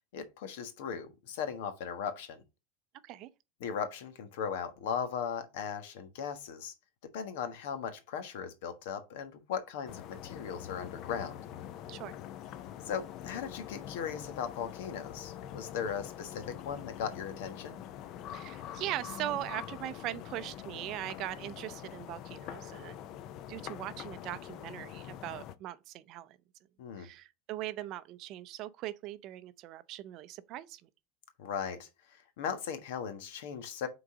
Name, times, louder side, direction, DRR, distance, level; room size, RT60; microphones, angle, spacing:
voice 1, 0.1-2.4 3.6-6.7 7.1-11.4 12.9-17.8 26.8-27.1 31.4-33.9, left 7 dB, 75° left, 1.3 m, -38 dB
sound 1, 9.9-25.6, left 10 dB, 35° left, 0.4 m, -45 dB
voice 2, 18.3-23.0 23.5-26.4 27.0-30.8, right 14 dB, 40° right, 0.5 m, -40 dB
6.1 x 3.9 x 4.9 m
supercardioid pair, 175°, 0 cm